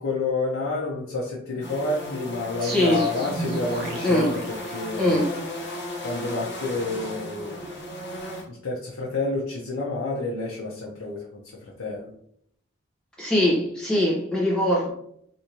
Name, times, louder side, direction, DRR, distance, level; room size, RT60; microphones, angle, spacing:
voice 1, 0.0-4.4 4.7-5.2 6.0-7.6 8.5-11.4 11.8-12.1, left 3 dB, 85° left, 0.7 m, -29 dB
sound 1, 1.6-8.4, left 1 dB, 55° left, 1.1 m, -35 dB
voice 2, 2.6-3.1 4.0-4.3 5.0-5.3 13.2-14.9, left 1 dB, 5° left, 0.9 m, -22 dB
sound 2, 2.6-5.4, right 2 dB, 50° right, 0.8 m, -35 dB
3.4 x 2.6 x 2.9 m
head